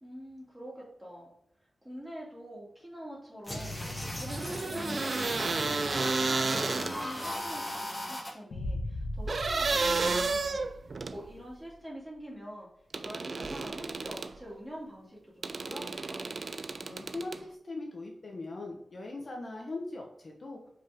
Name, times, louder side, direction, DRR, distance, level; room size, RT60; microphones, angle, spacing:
voice 1, 0.0-1.3 1.8-12.7 13.0-16.2, equal, 10° right, -5 dB, 2.5 m, -45 dB
sound 1, 3.4-8.3, left 1 dB, 15° left, 1.4 m, -37 dB
sound 2, 4.3-7.3 9.3-11.2 12.9-14.4 15.4-17.4, right 3 dB, 45° right, 0.4 m, -32 dB
Boom, 8.5-11.5, left 1 dB, 75° left, 1.1 m, -38 dB
voice 2, 16.8-20.6, left 2 dB, 45° left, 0 dB, 1.0 m, -40 dB
5.5 x 4.8 x 3.7 m, 0.69 s
wide cardioid pair, 160°, 0 cm